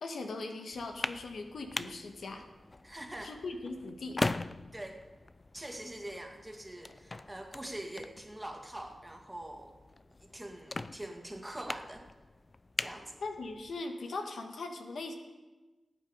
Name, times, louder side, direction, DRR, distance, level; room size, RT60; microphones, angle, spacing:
voice 1, 0.0-2.5 3.2-4.3 13.2-15.1, left 3 dB, 85° left, 4 dB, 1.4 m, -40 dB
sound 1, 0.7-13.8, left 2 dB, 35° left, 0.5 m, -41 dB
voice 2, 2.8-3.3 4.7-5.0 5.5-9.7 10.3-12.0 12.8-13.1, right 1 dB, 15° right, 2 dB, 2.1 m, -43 dB
19.5 x 9.1 x 5.0 m, 1.2 s
cardioid pair, 70°, 0 cm